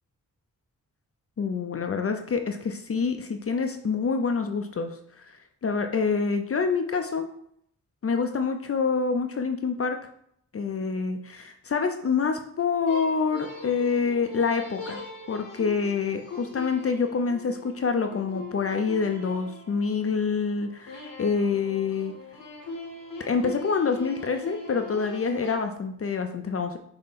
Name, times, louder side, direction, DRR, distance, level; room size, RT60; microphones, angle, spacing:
voice 1, 1.4-5.0 5.3-5.4 5.6-7.3 8.0-10.0 10.5-15.0 15.3-22.1 23.3-26.8, left 5 dB, 45° left, 6 dB, 0.5 m, -26 dB
sound 1, 12.9-20.2 20.9-25.6, left 3 dB, 75° left, 1.0 m, -41 dB
5.4 x 2.1 x 4.1 m, 0.69 s
cardioid pair, 55°, 34 cm